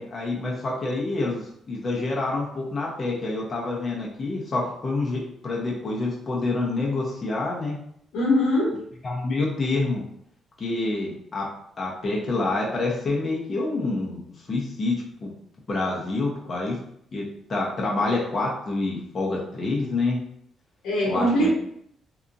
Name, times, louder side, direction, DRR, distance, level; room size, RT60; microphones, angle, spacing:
voice 1, 0.0-7.8 9.0-10.0 10.6-11.5 11.8-14.2 14.5-15.3 15.7-16.8 17.1-17.2 17.5-20.2 21.0-21.5, left 2 dB, 35° left, -3 dB, 0.7 m, -27 dB
voice 2, 8.1-8.8 20.8-21.5, left 1 dB, 90° left, -3 dB, 1.0 m, -21 dB
2.8 x 2.4 x 2.5 m, 0.71 s
cardioid pair, 90°, 0 cm